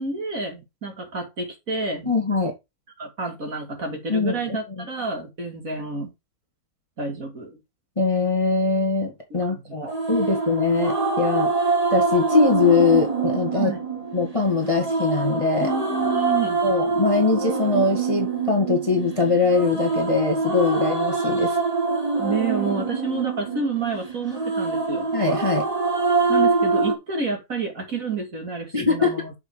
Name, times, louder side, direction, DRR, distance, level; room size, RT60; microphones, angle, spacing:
voice 1, 0.0-2.1 3.0-6.1 7.0-7.6 9.3-9.7 13.5-13.8 15.6-16.6 22.2-25.1 26.3-29.4, right 4 dB, 45° right, 2.8 m, -29 dB
voice 2, 2.0-2.5 4.1-4.8 8.0-11.5 11.9-13.7 14.1-15.7 16.6-21.6 25.1-25.7 28.7-29.4, left 4 dB, 15° left, 1.7 m, -22 dB
sound 1, 9.9-26.9, right 3 dB, 20° right, 1.6 m, -24 dB
7.1 x 5.4 x 4.7 m
omnidirectional pair, 2.0 m